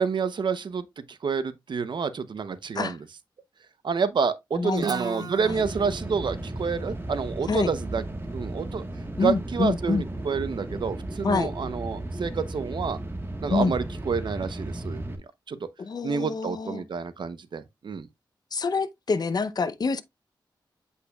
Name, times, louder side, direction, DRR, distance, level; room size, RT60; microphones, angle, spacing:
voice 1, 0.0-3.0 3.8-8.0 8.3-8.8 9.2-13.0 13.4-15.2 15.5-15.6 16.0-18.1, right 5 dB, 70° right, 0.8 m, -28 dB
voice 2, 4.5-5.6 7.5-7.7 9.2-10.0 11.2-11.5 13.5-13.8 15.8-16.8 18.5-20.0, left 4 dB, 55° left, 0.7 m, -27 dB
Guitar, 4.8-8.5, right 6 dB, 55° right, 0.4 m, -38 dB
sound 1, 5.4-15.2, right 1 dB, 30° right, 1.4 m, -35 dB
8.2 x 5.5 x 2.3 m
wide cardioid pair, 90°, 8 cm